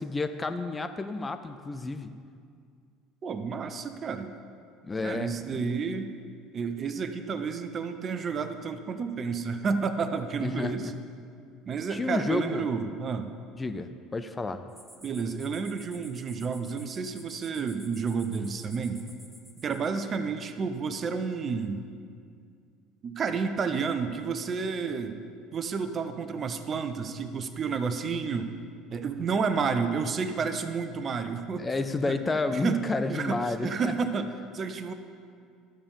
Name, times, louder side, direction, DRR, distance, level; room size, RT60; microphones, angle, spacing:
voice 1, 0.0-2.1 4.8-5.7 10.4-10.9 11.9-12.7 13.6-14.6 31.6-33.9, left 3 dB, 20° left, 8 dB, 0.5 m, -31 dB
voice 2, 3.2-4.3 5.0-6.1 6.5-10.9 11.6-13.3 15.0-19.0 19.6-21.8 23.0-25.2 25.5-28.5 28.9-31.7 32.1-32.2 32.5-32.8 33.1-34.9, right 5 dB, 35° right, 9 dB, 0.7 m, -30 dB
sound 1, 14.7-20.0, equal, 5° right, 1.1 m, -52 dB
13.0 x 6.9 x 5.2 m, 2.2 s
figure-of-eight pair, 65°, 0 cm